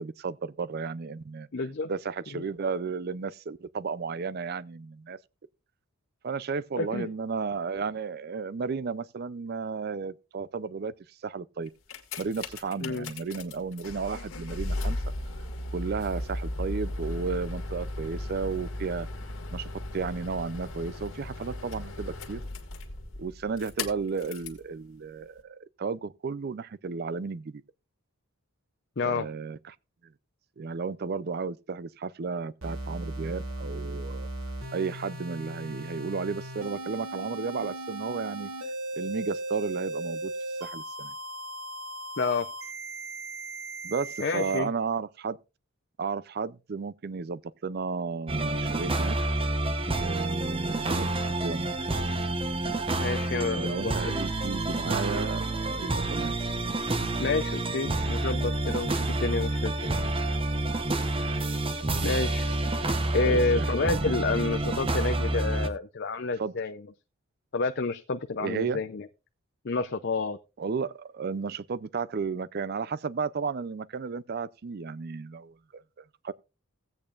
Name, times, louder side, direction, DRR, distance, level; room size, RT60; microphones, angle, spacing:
voice 1, 0.0-1.5 1.9-5.2 6.2-10.9 11.2-11.7 12.2-15.0 15.7-19.1 19.5-22.4 23.2-27.6 29.0-29.8 30.6-34.3 34.7-38.5 38.9-40.3 40.6-41.1 43.8-45.4 46.0-49.2 50.0-51.9 53.6-56.3 63.2-63.7 66.4-66.5 68.4-68.8 70.6-76.3, right 5 dB, 45° right, 0.4 m, -33 dB
voice 2, 1.5-1.9 2.3-2.4 6.8-7.1 12.8-13.1 29.0-29.3 42.2-42.5 44.2-44.7 53.0-54.2 57.2-59.9 61.9-62.4 63.1-66.8 67.5-69.1 69.6-70.4, left 3 dB, 50° left, 0.6 m, -29 dB
sound 1, 11.7-24.7 25.4-25.5, left 2 dB, 70° left, 1.9 m, -36 dB
sound 2, 32.6-44.6, right 1 dB, 80° right, 2.8 m, -37 dB
sound 3, 48.3-65.7, right 2 dB, 25° right, 0.8 m, -28 dB
16.5 x 8.6 x 2.4 m
head